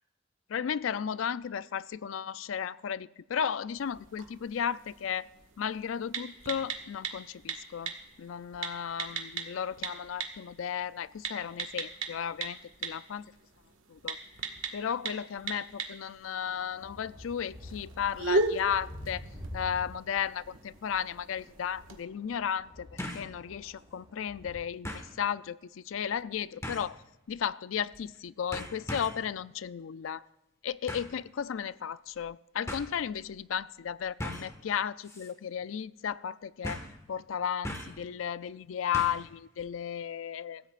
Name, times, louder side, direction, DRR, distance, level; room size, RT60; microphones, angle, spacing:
voice 1, 0.5-5.3 5.6-7.9 8.2-13.2 13.9-14.2 14.7-19.2 19.5-22.9 23.1-27.0 27.3-30.2 30.6-36.8 37.1-40.6, left 8 dB, 75° left, 0.4 m, -34 dB
sound 1, 3.8-22.0, right 3 dB, 80° right, 1.7 m, -38 dB
sound 2, 16.4-24.6, equal, 30° right, 5.2 m, -48 dB
sound 3, 21.1-21.2 23.0-23.3 23.8-23.9 24.8-25.1 26.6-27.0 27.9-28.2 28.5-29.3 30.9-31.2 32.2-32.3 32.7-32.9 34.2-34.6 35.0-35.3 35.6-35.7 36.6-37.0 37.6-38.0 38.9-39.3 39.6-39.7, left 1 dB, 15° left, 1.5 m, -39 dB
24.0 x 15.0 x 2.5 m
head